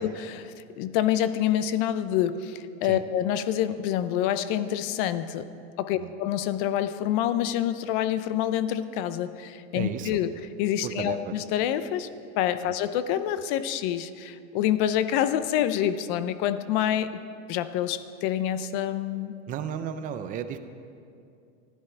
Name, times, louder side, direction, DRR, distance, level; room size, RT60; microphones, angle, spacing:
voice 1, 0.0-5.5 5.8-17.2 17.5-19.3, left 11 dB, 45° left, 13 dB, 0.6 m, -27 dB
voice 2, 9.7-10.2 10.8-11.3 12.6-12.7 19.5-20.6, right 9 dB, 20° right, 9 dB, 0.4 m, -34 dB
14.5 x 10.5 x 4.5 m, 2.4 s
supercardioid pair, 145°, 37 cm